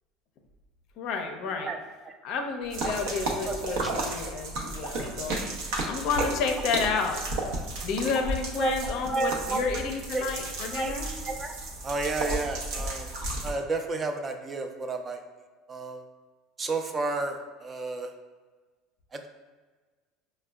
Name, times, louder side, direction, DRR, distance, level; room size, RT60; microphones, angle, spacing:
voice 1, 1.0-1.7 2.2-5.4 5.9-7.2 7.8-11.1, left 5 dB, 60° left, 4 dB, 0.4 m, -30 dB
sound 1, 2.7-13.5, right 2 dB, 75° right, 0.6 m, -33 dB
voice 2, 3.5-3.9 8.6-8.7 9.1-9.6 10.1-10.3 10.7-10.9 11.3-11.5 11.8-13.1 13.4-15.2 15.7-16.0 16.6-18.1 19.1-19.3, right 3 dB, 25° right, 5 dB, 0.4 m, -31 dB
5.0 x 2.1 x 2.2 m, 1.3 s
supercardioid pair, 95°, 0 cm